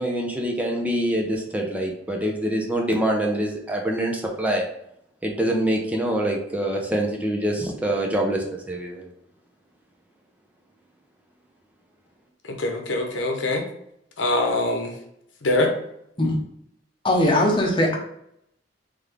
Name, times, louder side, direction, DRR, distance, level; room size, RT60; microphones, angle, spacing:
voice 1, 0.0-4.7 5.2-9.1, right 1 dB, 10° right, 0 dB, 0.7 m, -25 dB
voice 2, 12.4-13.6 14.2-14.9 15.4-15.7, left 2 dB, 85° left, 3 dB, 0.9 m, -23 dB
voice 3, 17.0-18.0, left 1 dB, 30° left, 0 dB, 0.9 m, -20 dB
3.9 x 3.5 x 3.3 m, 0.75 s
head